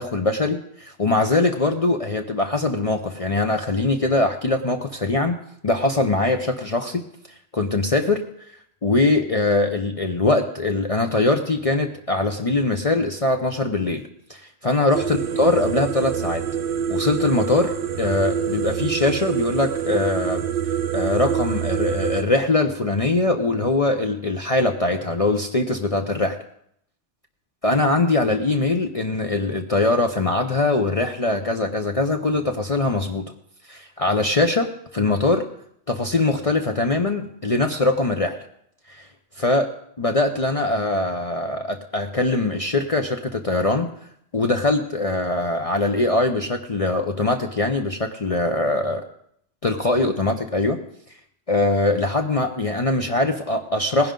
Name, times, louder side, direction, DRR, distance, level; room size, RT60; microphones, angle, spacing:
voice 1, 0.0-7.1 7.5-8.5 8.8-14.0 14.3-16.4 16.9-20.4 20.9-26.4 27.6-33.2 33.7-35.4 35.9-38.4 38.9-39.1 39.4-39.7 40.0-43.9 44.3-49.0 49.6-50.8 51.5-54.1, left 2 dB, 35° left, 3 dB, 0.8 m, -22 dB
sound 1, 14.9-22.2, right 8 dB, 55° right, 0.8 m, -26 dB
19.0 x 10.5 x 3.8 m, 0.70 s
omnidirectional pair, 1.2 m